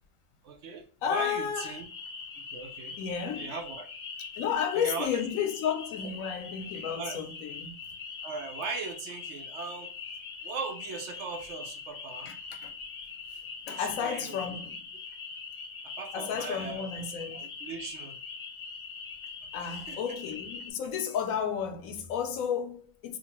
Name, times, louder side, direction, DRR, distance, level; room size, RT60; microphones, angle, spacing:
voice 1, 0.4-1.9 2.5-3.0 3.3-3.8 4.8-5.1 7.0-7.2 8.2-9.9 10.4-12.3 13.7-14.6 15.8-16.9 17.3-18.2 19.5-20.2, right 4 dB, 65° right, 0.8 m, -39 dB
voice 2, 1.0-1.8 3.0-3.5 4.4-7.8 12.3-12.7 13.7-14.8 16.1-17.5 19.5-23.2, left 7 dB, 85° left, 1.0 m, -32 dB
sound 1, 1.6-20.7, left 5 dB, 65° left, 0.4 m, -42 dB
2.8 x 2.3 x 2.9 m
omnidirectional pair, 1.4 m